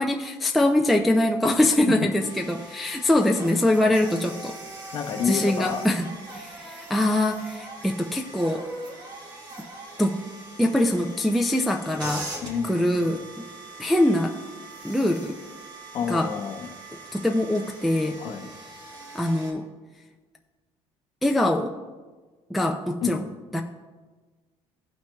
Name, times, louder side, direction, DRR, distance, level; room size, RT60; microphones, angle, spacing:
voice 1, 0.0-4.6 5.3-6.0 6.3-8.6 10.0-10.2 10.6-12.3 12.6-13.2 13.8-14.4 14.8-15.4 16.1-16.3 17.1-18.2 19.1-19.6 21.2-21.7 22.5-23.2 23.5-23.6, left 1 dB, ahead, 2 dB, 0.3 m, -23 dB
sound 1, 2.2-19.5, right 1 dB, 35° right, 1.3 m, -41 dB
voice 2, 4.9-5.9 12.4-13.1 15.9-16.8 18.2-18.5 23.0-23.2, left 7 dB, 45° left, 5 dB, 0.7 m, -30 dB
16.0 x 5.8 x 2.2 m, 1.4 s
cardioid pair, 170°, 12 cm